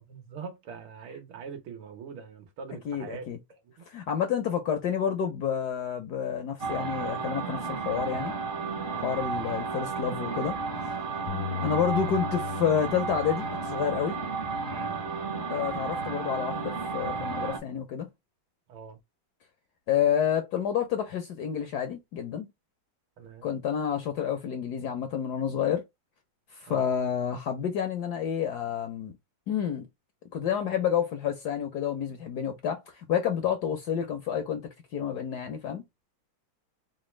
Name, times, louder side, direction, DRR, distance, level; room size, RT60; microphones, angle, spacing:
voice 1, 0.1-3.9 8.9-9.2 11.1-11.4 14.7-15.0 18.7-19.0 23.2-23.5 26.7-26.9, right 6 dB, 75° right, 1.8 m, -43 dB
voice 2, 2.9-3.4 3.9-8.3 9.0-10.5 11.6-14.2 15.5-18.1 19.9-22.5 23.4-25.8 26.5-29.1 29.5-29.9 30.3-34.6 34.9-35.8, left 8 dB, 70° left, 1.0 m, -29 dB
sound 1, 6.6-17.6, right 4 dB, 50° right, 1.0 m, -33 dB
Bass guitar, 11.3-15.7 16.3-17.5, left 8 dB, 90° left, 1.5 m, -40 dB
4.0 x 2.2 x 3.1 m
omnidirectional pair, 2.3 m